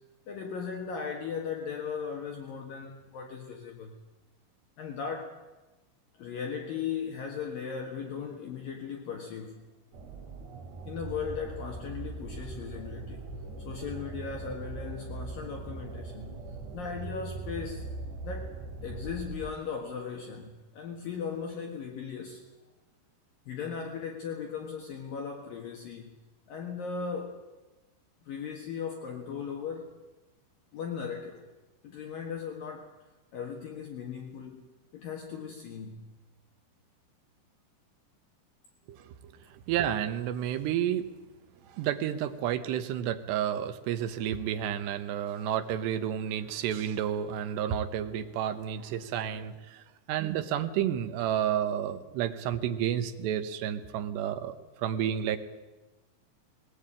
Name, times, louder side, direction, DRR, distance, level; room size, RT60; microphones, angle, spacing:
voice 1, 0.3-4.0 4.8-5.3 6.1-9.6 10.8-13.2 13.6-16.4 16.7-17.9 18.2-22.4 23.5-26.1 26.5-27.4 28.2-29.9 30.7-31.4 31.8-34.7 34.9-36.2, left 6 dB, 60° left, 2 dB, 3.0 m, -37 dB
sound 1, 9.9-19.5, right 3 dB, 50° right, 3.3 m, -40 dB
voice 2, 39.5-41.1 41.7-55.4, right 10 dB, 75° right, 9 dB, 3.1 m, -31 dB
21.0 x 18.5 x 8.9 m, 1.1 s
omnidirectional pair, 5.2 m